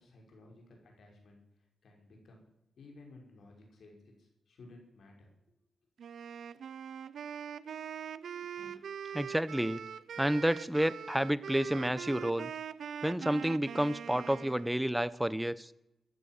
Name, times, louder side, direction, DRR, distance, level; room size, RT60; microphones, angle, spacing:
voice 1, 0.0-1.4 1.8-2.4 2.8-5.3, left 2 dB, 70° left, 1 dB, 5.8 m, -56 dB
Wind instrument woodwind instrument, 6.0-14.8, right 8 dB, 80° right, 0.7 m, -43 dB
voice 2, 9.1-9.8 10.2-12.5 13.0-15.7, right 1 dB, 5° right, 17 dB, 0.8 m, -30 dB
14.5 x 10.5 x 7.7 m, 0.87 s
cardioid pair, 75°, 0 cm